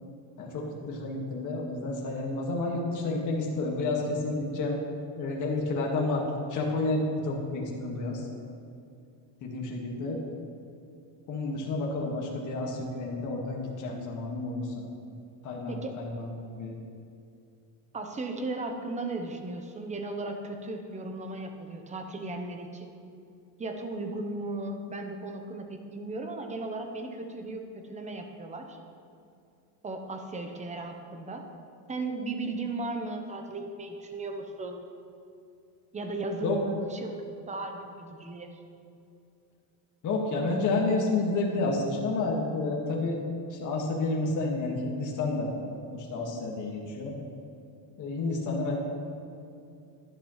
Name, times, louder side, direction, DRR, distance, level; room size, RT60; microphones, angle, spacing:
voice 1, 0.4-4.8 5.2-6.2 6.5-8.3 9.4-10.2 11.3-14.7 15.4-16.8 36.4-36.6 40.0-43.2 43.5-45.5 45.9-47.2 48.0-48.8, left 3 dB, 40° left, -1 dB, 1.9 m, -30 dB
voice 2, 15.7-16.0 17.9-22.9 23.6-28.8 29.8-31.5 31.9-34.9 35.9-38.5, right 2 dB, 15° right, 5 dB, 0.8 m, -36 dB
11.5 x 11.5 x 3.2 m, 2.6 s
cardioid pair, 145°, 44 cm